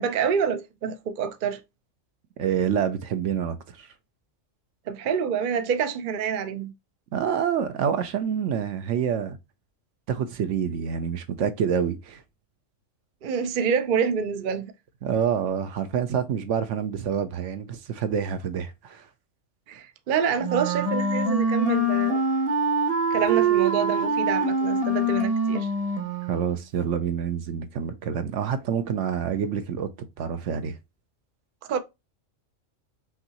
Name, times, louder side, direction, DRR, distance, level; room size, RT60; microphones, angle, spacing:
voice 1, 0.0-1.6 4.9-6.7 13.2-14.7 19.7-22.2 23.1-25.7 31.7-31.8, right 7 dB, 55° right, 0.6 m, -27 dB
voice 2, 2.4-3.9 7.1-9.4 10.1-12.2 15.0-19.1 26.3-29.9 30.2-30.8, right 8 dB, 70° right, 1.0 m, -27 dB
Wind instrument woodwind instrument, 20.4-26.6, right 2 dB, 30° right, 0.9 m, -24 dB
5.9 x 2.7 x 2.8 m
omnidirectional pair, 1.3 m